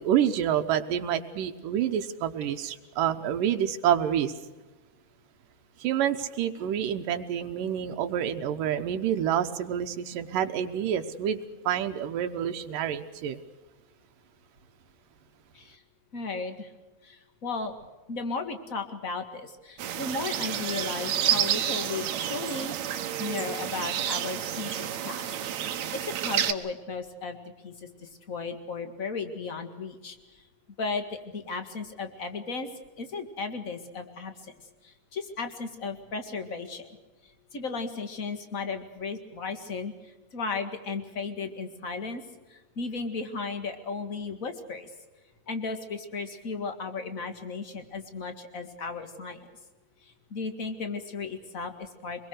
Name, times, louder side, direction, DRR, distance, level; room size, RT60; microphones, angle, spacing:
voice 1, 0.0-4.3 5.8-11.4 11.7-13.4, right 10 dB, 80° right, 8 dB, 2.7 m, -28 dB
voice 2, 16.1-16.7 17.0-17.7 18.1-25.4 25.7-27.4 27.6-30.5 30.8-32.7 33.0-34.5 34.8-37.0 37.2-42.2 42.5-44.9 45.5-49.5 50.0-52.3, left 4 dB, 30° left, 8 dB, 1.7 m, -35 dB
sound 1, 19.8-26.5, right 10 dB, 65° right, 2.1 m, -30 dB
25.0 x 21.5 x 6.5 m, 1.2 s
omnidirectional pair, 3.8 m